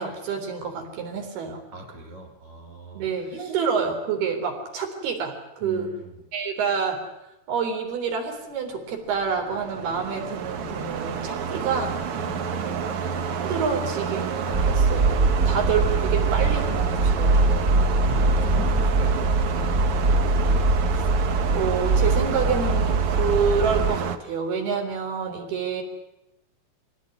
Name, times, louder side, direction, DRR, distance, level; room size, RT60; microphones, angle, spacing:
voice 1, 0.0-1.6 2.9-5.9 6.3-7.0 7.5-12.0 12.8-12.9 13.4-15.2 15.5-17.6 21.5-25.8, right 6 dB, 80° right, 4 dB, 5.8 m, -28 dB
voice 2, 1.7-3.6 5.6-6.2 12.1-13.1 18.0-20.1, equal, 45° right, 3 dB, 4.5 m, -40 dB
sound 1, 9.1-24.2, right 6 dB, 60° right, 1.5 m, -29 dB
sound 2, 14.5-23.9, right 3 dB, 25° right, 2.4 m, -22 dB
24.5 x 17.5 x 9.7 m, 0.89 s
omnidirectional pair, 4.4 m